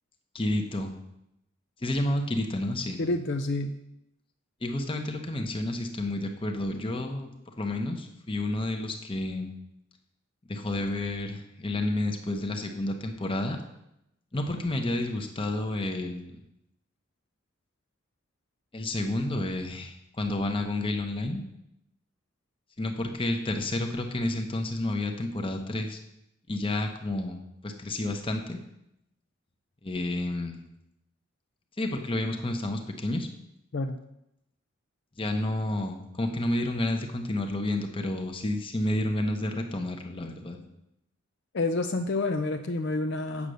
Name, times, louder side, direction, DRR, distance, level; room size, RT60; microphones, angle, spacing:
voice 1, 0.3-0.9 1.8-3.0 4.6-7.3 7.6-9.5 10.5-13.6 14.3-16.4 18.7-21.4 22.8-26.0 26.5-28.6 29.8-30.6 31.8-33.3 35.2-40.6, left 1 dB, 25° left, 4 dB, 0.9 m, -30 dB
voice 2, 3.0-3.8 33.7-34.0 41.5-43.5, left 2 dB, 55° left, 6 dB, 0.5 m, -28 dB
8.4 x 6.7 x 6.3 m, 0.84 s
head